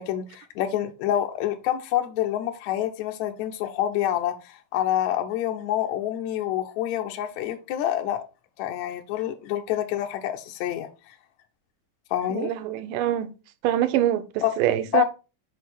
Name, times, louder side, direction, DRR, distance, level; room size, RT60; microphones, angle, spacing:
voice 1, 0.0-8.2 8.6-10.9 12.1-12.5 14.4-14.5 14.9-15.0, left 12 dB, 80° left, 1.7 m, -27 dB
voice 2, 12.3-13.3 13.6-15.0, right 12 dB, 80° right, 2.2 m, -24 dB
6.4 x 5.2 x 4.2 m
omnidirectional pair, 3.9 m